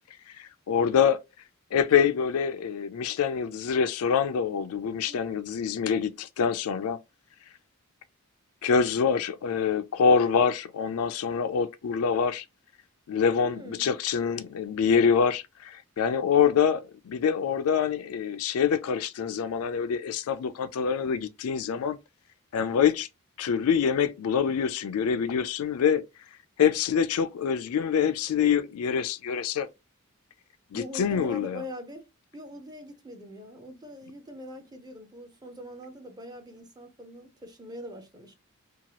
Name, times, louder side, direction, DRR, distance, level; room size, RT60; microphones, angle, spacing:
voice 1, 0.4-1.2 1.7-7.0 8.6-12.4 13.1-22.0 22.5-23.1 23.4-26.0 26.6-29.7 30.7-31.6, left 7 dB, 85° left, 0.4 m, -25 dB
voice 2, 13.4-13.9 30.7-32.1 32.3-38.4, left 1 dB, 20° right, 0.5 m, -43 dB
2.8 x 2.3 x 2.8 m
head